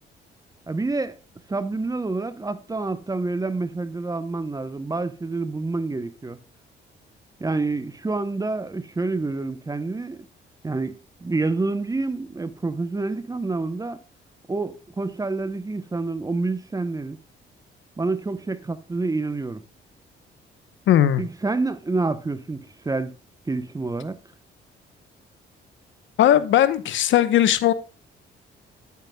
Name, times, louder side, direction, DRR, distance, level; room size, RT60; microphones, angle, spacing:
voice 1, 0.7-1.2 1.5-6.4 7.4-10.2 10.6-14.0 14.5-17.2 18.0-19.6 21.2-23.1 23.5-24.2, right 3 dB, 20° right, 0.8 m, -28 dB
voice 2, 20.9-21.2 26.2-27.7, left 11 dB, 75° left, 0.8 m, -18 dB
9.5 x 9.2 x 2.2 m
cardioid pair, 90°, 20 cm